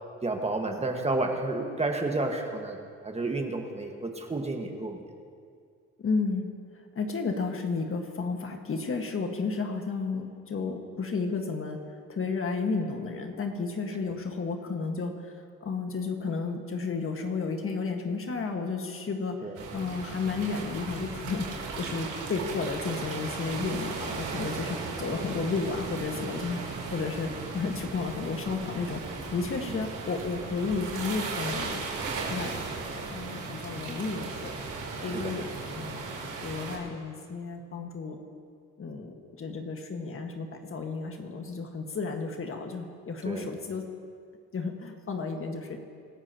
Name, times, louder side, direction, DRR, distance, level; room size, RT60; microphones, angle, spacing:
voice 1, 0.2-2.8 3.0-5.1 14.1-14.2 19.4-19.6 29.6-29.8 35.0-35.3 43.2-43.5, right 2 dB, 20° right, 3 dB, 1.6 m, -31 dB
voice 2, 6.0-6.5 6.9-11.8 12.1-15.3 15.6-19.5 19.7-21.5 21.8-31.9 32.3-32.5 32.8-34.5 35.0-35.4 35.7-36.0 36.4-38.2 38.8-43.8 44.5-45.8, left 4 dB, 45° left, 3 dB, 1.7 m, -32 dB
sound 1, 19.5-36.8, right 4 dB, 80° right, 3.4 m, -36 dB
26.0 x 13.0 x 3.0 m, 2.2 s
cardioid pair, 90°, 30 cm